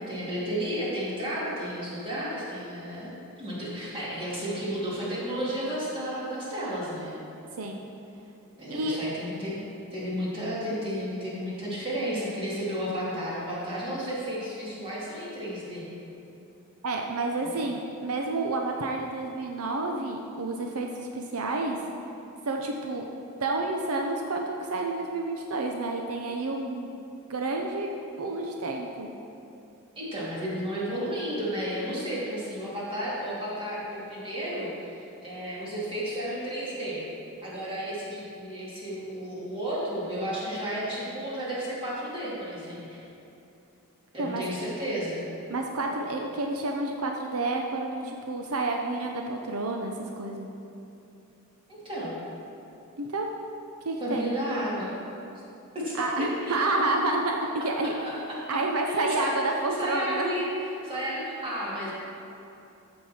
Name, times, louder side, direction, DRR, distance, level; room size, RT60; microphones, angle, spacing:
voice 1, 0.1-3.1 3.4-7.2 8.6-9.6 9.9-15.9 17.4-17.6 30.0-37.0 37.4-43.0 44.1-45.2 51.7-52.2 54.0-54.9 55.7-56.1 56.4-56.6 57.8-58.6 58.9-60.5 60.8-61.9, equal, 25° right, -7 dB, 2.7 m, -32 dB
voice 2, 16.8-21.8 22.5-23.1 23.4-26.9 27.3-27.9 28.2-29.1 44.2-44.4 45.5-50.5 53.0-53.3 53.8-54.3 56.0-57.4 57.6-57.9 58.5-60.3, right 2 dB, 75° right, 2 dB, 0.7 m, -29 dB
14.0 x 6.6 x 4.4 m, 2.8 s
head